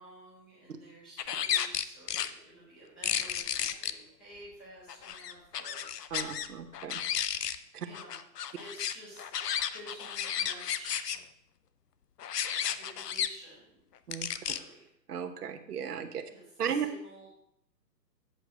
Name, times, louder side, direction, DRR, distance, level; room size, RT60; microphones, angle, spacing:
voice 1, 0.0-6.3 7.8-8.2 8.5-11.1 12.4-13.8 14.3-14.9 16.3-17.4, right 1 dB, 5° left, -12 dB, 0.7 m, -52 dB
sound 1, 1.2-2.3 3.0-3.9 4.9-6.5 6.7-7.6 7.9-11.2 12.2-13.3 14.1-14.6, left 9 dB, 70° left, 0.7 m, -33 dB
voice 2, 6.1-7.0 7.7-7.9 14.1-14.3 15.1-16.2 16.6-16.9, right 7 dB, 65° right, 7 dB, 1.1 m, -35 dB
8.0 x 4.9 x 6.1 m, 0.73 s
hypercardioid pair, 170°, 50 cm